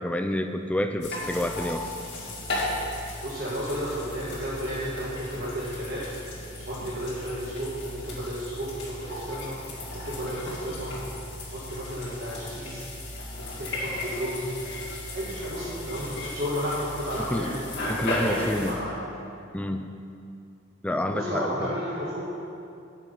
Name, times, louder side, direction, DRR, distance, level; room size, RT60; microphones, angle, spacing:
voice 1, 0.0-1.9 17.3-17.6 17.9-18.7 19.5-19.9 20.8-21.7, left 1 dB, 5° left, 6 dB, 0.3 m, -28 dB
sound 1, 1.0-18.7, left 1 dB, 55° left, 2.6 m, -35 dB
voice 2, 3.2-6.1 6.6-9.6 9.9-10.9 11.5-12.9 13.4-14.5 15.1-17.6 18.0-19.0 21.1-22.2, equal, 50° right, -8 dB, 1.5 m, -33 dB
9.0 x 7.3 x 5.3 m, 2.5 s
head